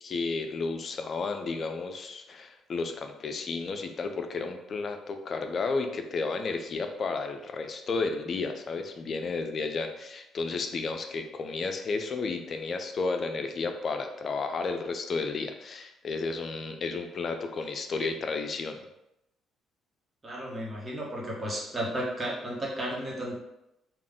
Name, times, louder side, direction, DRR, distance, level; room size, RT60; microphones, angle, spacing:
voice 1, 0.0-18.8, left 4 dB, 50° left, 6 dB, 0.5 m, -32 dB
voice 2, 20.2-23.4, right 1 dB, 25° right, -3 dB, 1.3 m, -33 dB
3.6 x 2.5 x 3.6 m, 0.86 s
supercardioid pair, 70°, 0 cm